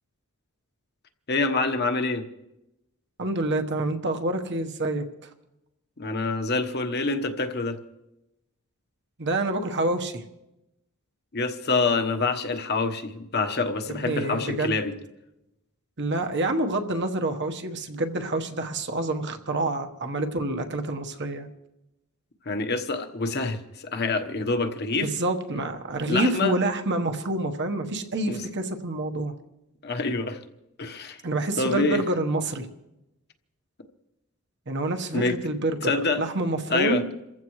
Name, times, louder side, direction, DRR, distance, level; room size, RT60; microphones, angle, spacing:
voice 1, 1.3-2.2 6.0-7.8 11.3-14.9 22.4-25.1 26.1-26.5 28.3-28.4 29.8-30.4 30.8-31.2 31.6-32.0 35.1-35.4 35.8-36.2 36.7-37.0, left 3 dB, 45° left, 6 dB, 1.2 m, -26 dB
voice 2, 3.2-5.3 9.2-10.2 13.9-14.8 16.0-21.5 25.0-29.3 31.2-32.7 34.7-37.1, right 2 dB, 50° right, 5 dB, 1.2 m, -27 dB
28.0 x 15.0 x 3.2 m, 0.92 s
head